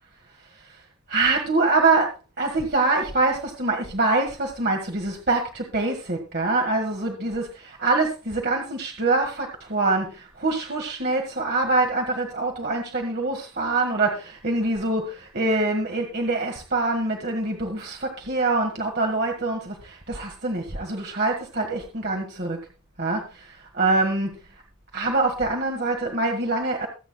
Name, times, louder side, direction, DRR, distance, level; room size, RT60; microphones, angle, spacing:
voice 1, 1.1-22.6 23.0-24.4 24.9-26.9, right 3 dB, 45° right, 2 dB, 1.6 m, -25 dB
23.0 x 8.4 x 2.3 m, 0.31 s
head